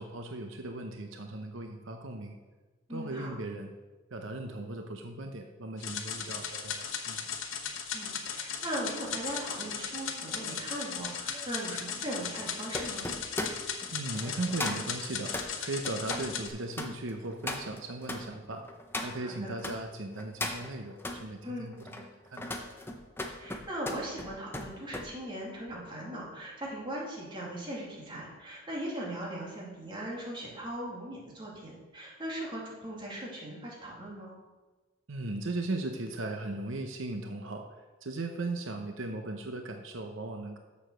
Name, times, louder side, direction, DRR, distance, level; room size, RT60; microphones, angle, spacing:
voice 1, 0.0-2.4 2.9-3.7 4.1-7.3 13.9-18.6 19.0-22.4 35.1-40.6, right 2 dB, 85° right, 5 dB, 0.8 m, -37 dB
voice 2, 2.9-3.4 7.9-13.1 19.2-19.5 21.4-21.7 23.4-34.4, right 1 dB, 25° right, -4 dB, 2.4 m, -39 dB
sound 1, 5.8-16.5, left 7 dB, 85° left, 1.0 m, -37 dB
sound 2, 9.1-19.8 20.2-21.2 21.7-25.1 25.4-25.7, left 2 dB, 10° left, 0.8 m, -39 dB
7.0 x 7.0 x 6.2 m, 1.2 s
head